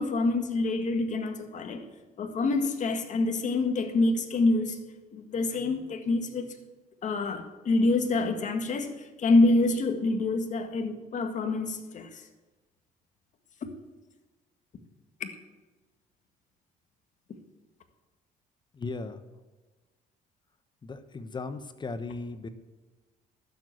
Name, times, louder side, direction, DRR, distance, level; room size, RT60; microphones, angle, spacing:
voice 1, 0.0-1.8 2.2-4.8 5.1-6.5 7.0-12.2 13.6-13.7 15.2-15.3, left 2 dB, 50° left, 6 dB, 1.8 m, -26 dB
voice 2, 18.8-19.2 20.8-22.5, left 3 dB, 25° left, 11 dB, 1.0 m, -37 dB
12.0 x 7.7 x 8.0 m, 1.2 s
cardioid pair, 105°, 17 cm